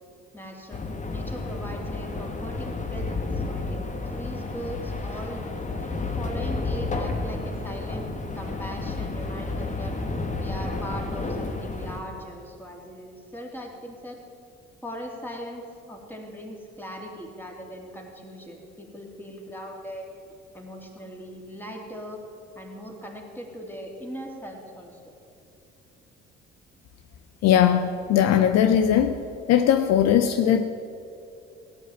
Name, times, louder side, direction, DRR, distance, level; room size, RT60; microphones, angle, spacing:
voice 1, 0.3-5.4 5.8-5.9 6.2-8.1 8.3-9.9 10.4-14.2 14.8-15.6 15.9-20.1 20.5-22.2 22.5-25.0, equal, 5° left, 0 dB, 3.2 m, -39 dB
sound 1, 0.7-12.0, left 3 dB, 25° left, 1.6 m, -31 dB
voice 2, 27.4-29.2 29.5-30.7, left 9 dB, 55° left, 9 dB, 0.7 m, -19 dB
17.0 x 8.7 x 7.4 m, 2.6 s
figure-of-eight pair, 50°, 31 cm